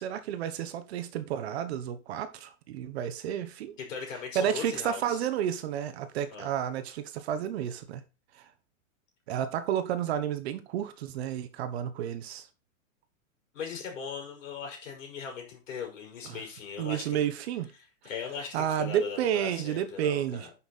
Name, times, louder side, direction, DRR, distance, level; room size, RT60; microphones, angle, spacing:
voice 1, 0.0-3.7 4.3-8.0 9.3-12.5 16.3-16.4 16.8-17.7 18.5-20.5, right 10 dB, 50° right, 1.1 m, -31 dB
voice 2, 3.8-5.2 6.3-6.5 13.5-17.2 18.0-20.5, left 6 dB, 65° left, 5.0 m, -39 dB
9.9 x 5.7 x 4.1 m
supercardioid pair, 165°, 41 cm